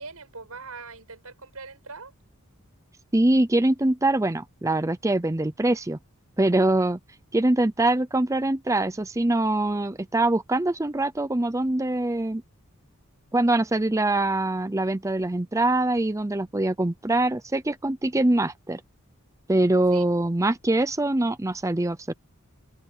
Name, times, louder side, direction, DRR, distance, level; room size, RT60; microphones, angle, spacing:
voice 1, 0.0-2.1 19.9-20.1, right 4 dB, 90° right, 6.3 m, -41 dB
voice 2, 3.1-6.0 6.4-7.0 7.3-12.4 13.3-18.8 19.5-22.1, right 2 dB, 15° right, 0.6 m, -23 dB
open air
head